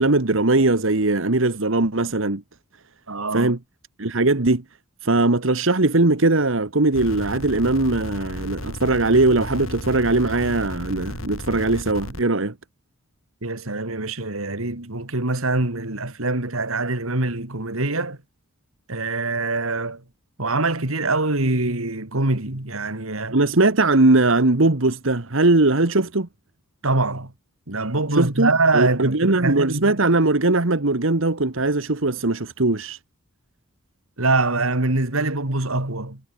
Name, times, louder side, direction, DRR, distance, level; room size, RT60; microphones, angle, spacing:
voice 1, 0.0-2.4 3.3-3.6 4.0-4.6 5.0-12.5 23.3-26.3 28.1-33.0, right 2 dB, 65° right, 1.5 m, -20 dB
voice 2, 3.1-3.5 13.4-18.2 18.9-20.0 20.4-23.4 26.8-27.3 27.7-29.9 34.2-36.2, right 2 dB, 85° right, 2.9 m, -24 dB
sound 1, 6.9-12.2, left 1 dB, 75° left, 7.7 m, -34 dB
head